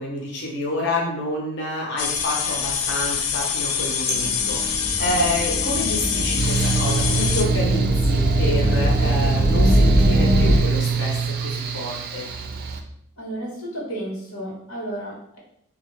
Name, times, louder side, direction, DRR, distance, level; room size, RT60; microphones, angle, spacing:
voice 1, 0.0-12.3, left 1 dB, 55° left, -2 dB, 0.8 m, -28 dB
sound 1, 2.0-7.4, left 7 dB, 70° left, 0.4 m, -25 dB
sound 2, 4.1-10.6, equal, 15° left, 0.7 m, -22 dB
Mechanical fan, 6.4-12.8, right 6 dB, 45° right, 0.3 m, -24 dB
voice 2, 13.2-15.4, right 1 dB, 90° left, -3 dB, 1.3 m, -32 dB
3.4 x 2.5 x 3.2 m, 0.75 s
head